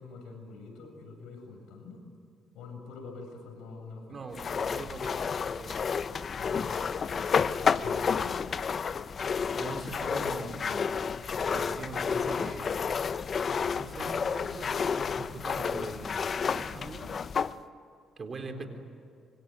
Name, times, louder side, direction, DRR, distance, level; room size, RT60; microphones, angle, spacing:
voice 1, 0.0-2.0 2.5-4.2 6.3-6.8 7.6-8.5 18.4-18.7, left 4 dB, 85° left, 3 dB, 7.8 m, -45 dB
voice 2, 4.1-5.8 7.6-7.7 9.5-10.9 11.5-12.9 13.7-17.1 18.2-18.7, right 4 dB, 40° right, 6 dB, 4.0 m, -42 dB
sound 1, 4.4-17.5, left 6 dB, 45° left, 0.8 m, -30 dB
26.0 x 25.0 x 9.2 m, 2.5 s
cardioid pair, 90°, 0 cm